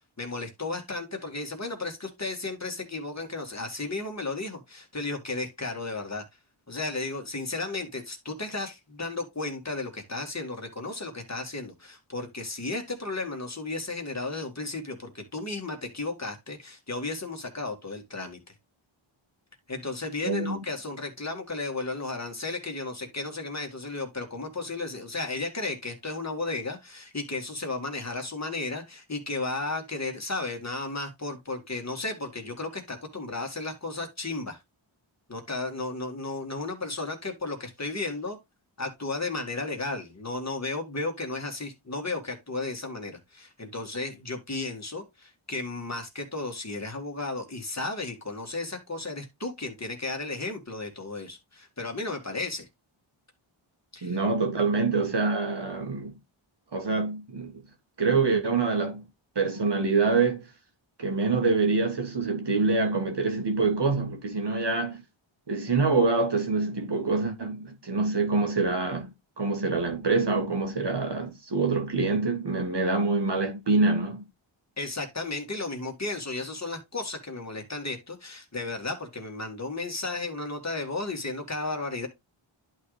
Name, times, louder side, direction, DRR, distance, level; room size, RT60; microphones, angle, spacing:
voice 1, 0.2-6.2 6.7-18.4 19.7-34.6 35.3-38.4 38.8-52.7 53.9-54.2 74.8-82.1, left 3 dB, 30° left, 2.2 m, -34 dB
voice 2, 20.2-20.6 54.0-56.1 56.7-57.6 58.0-59.0 59.3-60.4 61.0-65.0 65.5-69.1 69.4-74.2, right 3 dB, 55° right, 1.7 m, -25 dB
11.0 x 3.9 x 3.2 m
wide cardioid pair, 65°, 50 cm